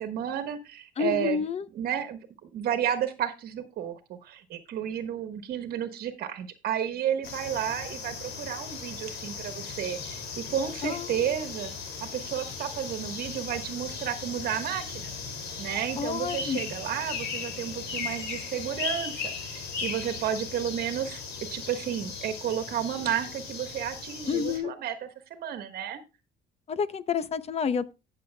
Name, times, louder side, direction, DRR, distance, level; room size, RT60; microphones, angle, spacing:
voice 1, 0.0-1.4 1.7-11.7 12.0-15.1 15.6-21.2 21.5-26.0, right 9 dB, 65° right, 1.3 m, -32 dB
voice 2, 1.0-1.6 10.8-11.2 16.0-16.6 24.3-24.7 26.7-27.9, left 6 dB, 40° left, 0.8 m, -29 dB
sound 1, 7.2-24.6, left 5 dB, 80° left, 2.6 m, -37 dB
17.0 x 6.7 x 2.2 m
cardioid pair, 110°, 17 cm